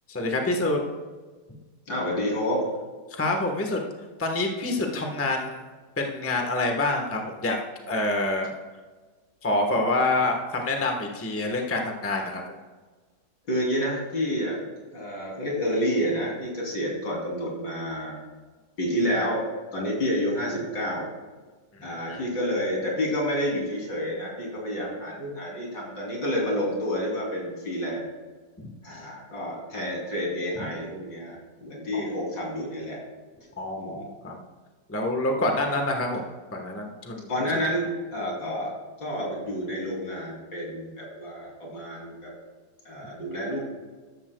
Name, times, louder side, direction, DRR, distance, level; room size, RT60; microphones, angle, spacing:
voice 1, 0.1-0.8 3.1-3.8 4.2-5.6 6.0-7.6 7.9-8.5 9.4-12.4 21.8-22.2 28.6-29.1 30.6-30.7 31.9-32.0 33.6-34.4 34.9-37.3, left 2 dB, 10° left, 2 dB, 0.9 m, -27 dB
voice 2, 1.9-2.6 13.5-14.6 14.9-18.2 18.8-19.4 19.7-21.1 21.8-28.1 28.8-33.0 33.8-34.1 37.3-38.7 39.0-42.3 42.9-43.6, equal, 75° left, -3 dB, 3.8 m, -29 dB
14.0 x 11.5 x 2.3 m, 1.4 s
omnidirectional pair, 2.0 m